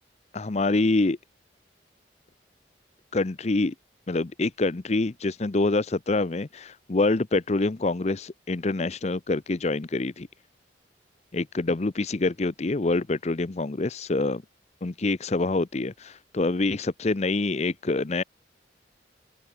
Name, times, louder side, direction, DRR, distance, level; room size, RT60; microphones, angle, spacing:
voice 1, 0.3-1.2 3.1-3.7 4.1-10.3 11.3-14.4 14.8-18.2, left 2 dB, 35° left, 0.6 m, -26 dB
open air
head